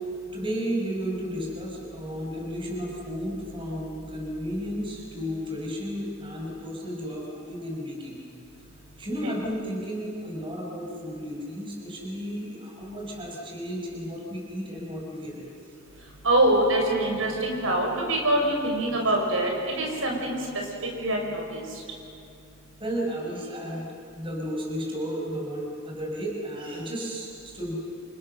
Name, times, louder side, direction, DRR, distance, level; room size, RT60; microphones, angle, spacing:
voice 1, 0.3-8.2 9.0-15.8 22.8-23.9 24.1-27.8, equal, 25° right, -2 dB, 5.8 m, -33 dB
voice 2, 16.2-20.4 21.0-21.7, right 1 dB, 75° right, 0 dB, 6.1 m, -24 dB
30.0 x 28.0 x 6.7 m, 2.5 s
head